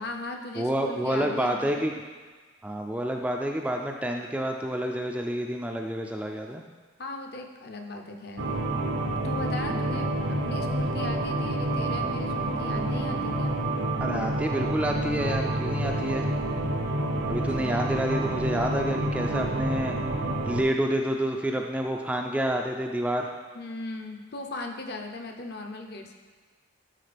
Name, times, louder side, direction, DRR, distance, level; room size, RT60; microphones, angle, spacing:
voice 1, 0.0-1.9 7.0-8.5 9.1-13.5 17.5-17.8 23.5-26.1, left 2 dB, 55° left, 4 dB, 0.6 m, -38 dB
voice 2, 0.6-1.9 2.6-6.6 9.7-9.8 14.0-16.3 17.3-20.0 20.5-23.3, right 1 dB, 5° right, 2 dB, 0.3 m, -28 dB
sound 1, 8.4-20.6, right 1 dB, 60° right, 0.6 m, -28 dB
11.5 x 4.2 x 3.4 m, 1.4 s
head